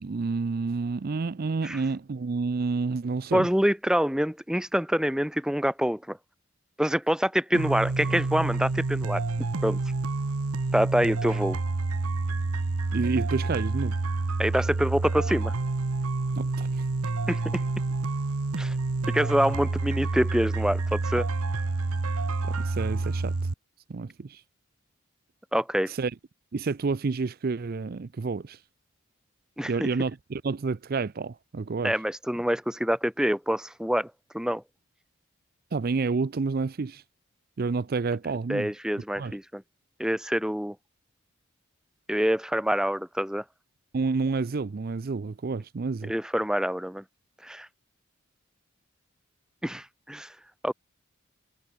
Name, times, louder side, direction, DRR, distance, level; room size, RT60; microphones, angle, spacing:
voice 1, 0.0-3.5 12.9-14.0 16.3-16.8 22.5-23.3 23.9-24.4 25.9-26.1 26.5-28.6 29.7-31.9 35.7-37.0 37.6-38.7 39.2-39.4 43.9-46.1, right 4 dB, 45° right, 0.4 m, -29 dB
voice 2, 3.3-6.2 6.8-9.2 9.6-9.8 10.7-11.6 14.4-15.5 17.3-17.6 18.6-18.7 19.1-21.3 25.5-25.9 29.6-29.9 31.8-34.6 38.5-39.6 40.0-40.7 42.1-43.4 46.1-47.0 47.4-47.7 49.6-50.3 50.6-50.7, equal, 5° right, 0.8 m, -26 dB
sound 1, 7.5-23.5, right 3 dB, 85° right, 0.9 m, -28 dB
head